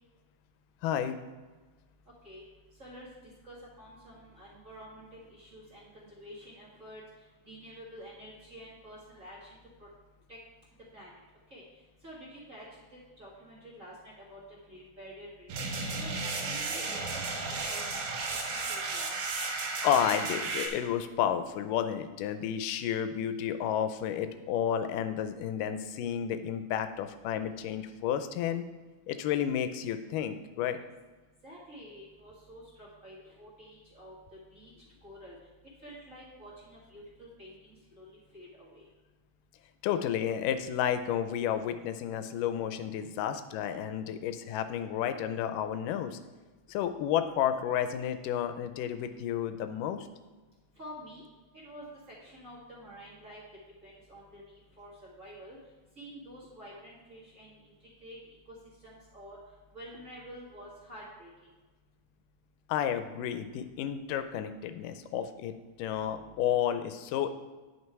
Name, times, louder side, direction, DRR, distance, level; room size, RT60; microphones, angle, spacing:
voice 1, 0.8-1.2 19.8-28.7 29.1-30.8 39.8-46.2 46.7-50.1 62.7-67.3, left 9 dB, 90° left, 10 dB, 2.2 m, -31 dB
voice 2, 3.4-7.0 7.5-9.9 10.3-10.4 10.9-11.2 11.5-11.6 12.0-12.8 13.2-13.9 14.3-14.4 14.7-15.5 16.0-19.1 31.4-34.2 34.5-34.7 35.0-35.4 35.8-38.9 50.8-51.2 51.5-53.4 53.8-55.6 56.0-57.6 58.0-58.2 58.5-58.6 58.8-59.4 59.7-61.3, equal, 30° right, -7 dB, 2.1 m, -49 dB
sound 1, 15.5-20.7, right 3 dB, 75° right, 2.7 m, -34 dB
9.5 x 5.7 x 4.7 m, 1.3 s
omnidirectional pair, 3.7 m